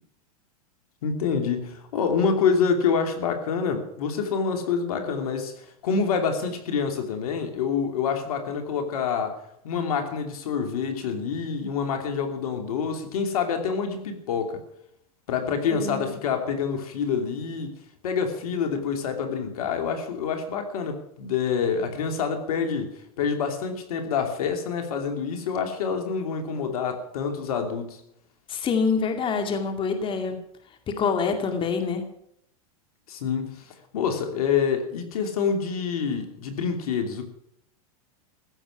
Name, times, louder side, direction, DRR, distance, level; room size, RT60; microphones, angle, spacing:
voice 1, 1.0-14.6 15.3-17.7 18.0-28.0 33.1-37.2, left 6 dB, 75° left, 2.8 m, -27 dB
voice 2, 15.7-16.1 28.5-30.4 31.0-32.0, left 5 dB, 25° left, 2.3 m, -26 dB
15.5 x 7.0 x 9.8 m
hypercardioid pair, 115°, 19 cm